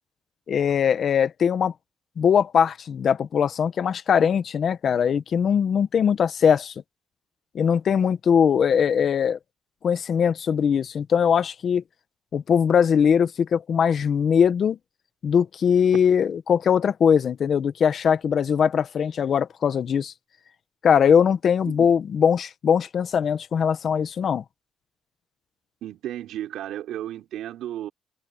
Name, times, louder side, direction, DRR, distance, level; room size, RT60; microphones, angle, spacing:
voice 1, 0.5-1.7 2.2-6.7 7.5-9.4 9.8-11.8 12.3-14.8 15.2-20.1 20.8-24.4, left 7 dB, 55° left, 1.2 m, -21 dB
voice 2, 25.8-27.9, right 12 dB, 80° right, 5.7 m, -33 dB
cardioid pair, 105°, 0 cm